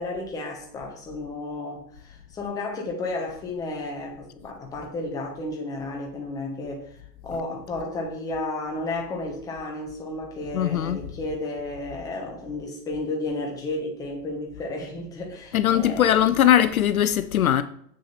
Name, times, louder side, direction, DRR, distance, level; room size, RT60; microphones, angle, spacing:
voice 1, 0.0-6.9 7.2-16.2, left 2 dB, 5° left, 0.9 m, -32 dB
voice 2, 10.5-11.0 15.5-17.6, left 11 dB, 60° left, 0.6 m, -20 dB
7.4 x 6.4 x 4.3 m
hypercardioid pair, 145°, 49 cm